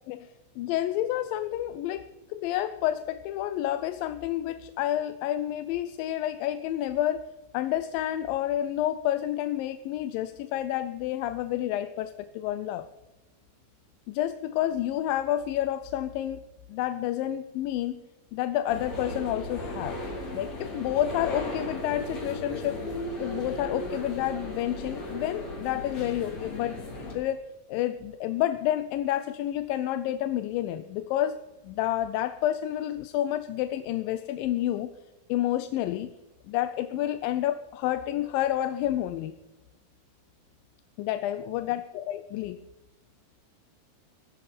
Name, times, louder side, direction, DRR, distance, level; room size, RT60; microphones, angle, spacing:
voice 1, 0.6-7.3 7.5-12.9 14.1-16.4 16.7-18.0 18.3-20.0 20.3-22.8 23.2-26.8 27.1-27.4 27.7-31.4 31.6-34.9 35.3-36.1 36.5-39.3 41.0-42.6, left 12 dB, 85° left, 12 dB, 2.4 m, -29 dB
sound 1, 18.7-27.1, left 1 dB, 50° left, 4.4 m, -36 dB
17.5 x 14.0 x 4.2 m, 1.0 s
omnidirectional pair, 4.0 m